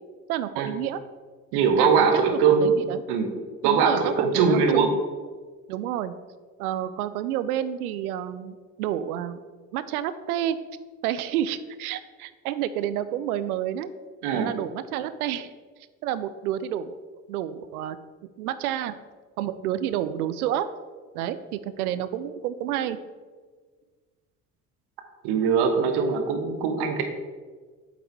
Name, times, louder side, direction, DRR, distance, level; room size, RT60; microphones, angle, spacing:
voice 1, 0.3-1.0 1.8-3.0 3.6-5.0 5.7-6.1 6.6-9.4 9.7-10.6 11.0-13.9 14.3-15.5 16.0-17.0 17.3-18.0 18.4-19.0 19.4-20.7 21.1-23.0, right 11 dB, 75° right, 13 dB, 0.5 m, -29 dB
voice 2, 1.5-2.7 3.1-3.3 3.6-4.9 14.2-14.5 25.2-27.0, right 6 dB, 60° right, 6 dB, 1.1 m, -21 dB
8.1 x 3.9 x 4.4 m, 1.5 s
figure-of-eight pair, 55°, 44 cm